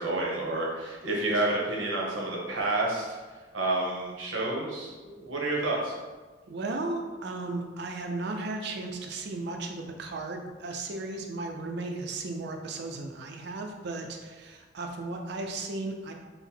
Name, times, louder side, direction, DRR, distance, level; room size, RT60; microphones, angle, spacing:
voice 1, 0.0-3.1 3.5-5.9, right 2 dB, 85° right, -3 dB, 0.9 m, -29 dB
voice 2, 6.5-16.1, right 2 dB, 60° right, 3 dB, 0.5 m, -35 dB
3.8 x 2.0 x 4.3 m, 1.3 s
head